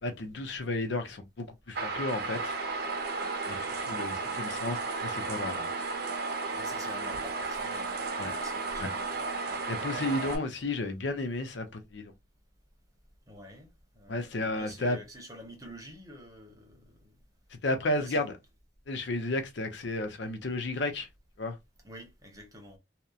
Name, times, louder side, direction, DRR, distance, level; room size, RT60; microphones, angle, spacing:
voice 1, 0.0-2.5 3.5-5.6 8.2-8.3 8.8-8.9 9.7-12.1 14.1-15.0 17.6-18.3 18.9-21.1 21.4-21.6, left 2 dB, 85° left, 0.6 m, -33 dB
sound 1, 1.7-10.4, right 3 dB, 60° right, 0.6 m, -34 dB
voice 2, 6.5-9.7 9.9-10.5 13.3-13.7 13.9-17.2 18.0-18.2 21.8-22.8, equal, 20° right, 0.9 m, -48 dB
2.8 x 2.1 x 2.4 m
head